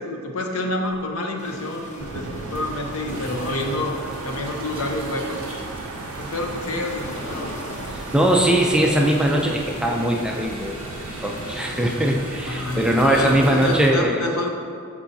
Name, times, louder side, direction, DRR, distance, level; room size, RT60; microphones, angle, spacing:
voice 1, 0.0-5.4 6.2-8.0 12.4-14.5, left 1 dB, 65° left, 2 dB, 0.8 m, -28 dB
sound 1, 0.9-1.0 2.4-13.9, right 1 dB, 25° right, 1.6 m, -37 dB
sound 2, 1.4-12.0, left 1 dB, 35° left, 1.0 m, -39 dB
sound 3, 2.0-14.0, right 3 dB, 65° right, 0.5 m, -36 dB
voice 2, 8.1-14.2, right 1 dB, 5° right, 0 dB, 0.5 m, -21 dB
13.0 x 4.7 x 2.7 m, 2.3 s
head